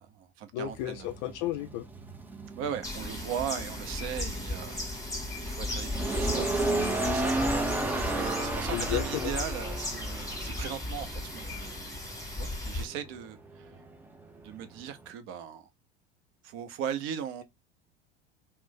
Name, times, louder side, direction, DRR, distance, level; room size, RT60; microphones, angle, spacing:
voice 1, 0.0-1.1 2.6-4.8 5.4-7.5 7.9-12.0 12.4-13.7 14.4-15.7 16.4-17.4, right 9 dB, 45° right, 0.7 m, -38 dB
voice 2, 0.5-1.9 8.7-9.3, left 13 dB, 50° left, 0.5 m, -33 dB
sound 1, 0.6-15.1, right 2 dB, 5° right, 0.5 m, -34 dB
sound 2, 2.8-12.8, left 2 dB, 10° left, 1.1 m, -36 dB
2.5 x 2.1 x 3.8 m
figure-of-eight pair, 75°, 30 cm